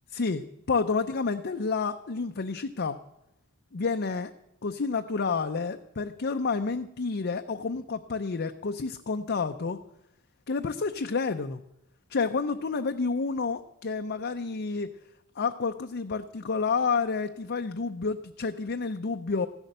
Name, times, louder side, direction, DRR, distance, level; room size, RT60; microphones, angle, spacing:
voice 1, 0.1-3.0 3.7-4.3 4.6-9.8 10.5-11.6 12.1-14.9 15.4-19.5, left 4 dB, 50° left, 6 dB, 0.6 m, -29 dB
14.5 x 11.5 x 6.6 m, 0.87 s
head